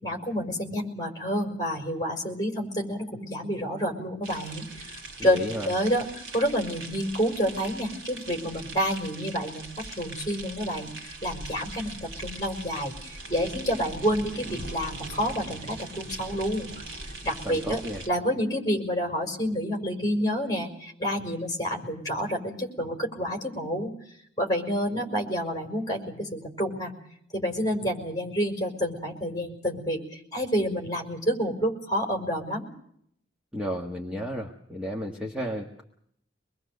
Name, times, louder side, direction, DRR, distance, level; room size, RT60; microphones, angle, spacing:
voice 1, 0.0-4.9 5.2-9.7 10.0-17.8 18.1-26.9 27.3-32.7, equal, 20° left, 2 dB, 5.2 m, -29 dB
sound 1, 4.2-18.1, right 2 dB, 80° right, 4.1 m, -41 dB
voice 2, 5.2-5.7 17.4-18.0 33.5-35.8, equal, 5° right, -1 dB, 1.6 m, -33 dB
25.0 x 21.5 x 6.7 m, 0.69 s
head